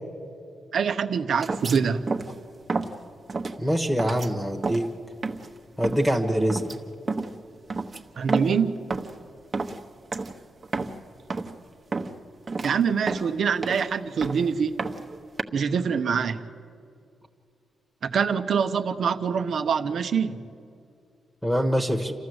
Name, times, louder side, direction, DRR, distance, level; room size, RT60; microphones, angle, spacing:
voice 1, 0.7-2.1 8.2-8.8 12.6-14.8 15.5-16.4 18.0-20.4, right 6 dB, 60° right, 0.9 m, -25 dB
sound 1, 1.4-1.8 2.1-2.4 2.7-2.9 3.3-3.6 4.0-4.3 4.6-4.9 5.2-5.5 5.8-6.1 6.5-6.8 7.1-7.3 7.7-8.6 8.9-9.2 9.5-9.8 10.1-10.3 10.6-11.0 11.3-11.5 11.9-12.2 12.5-12.7 13.1-13.9 14.2-14.5 14.8-15.4, right 3 dB, 35° right, 1.1 m, -30 dB
voice 2, 3.6-4.9 5.8-6.6 21.4-22.1, equal, ahead, 1.3 m, -24 dB
28.5 x 13.5 x 8.0 m
wide cardioid pair, 125°, 0 cm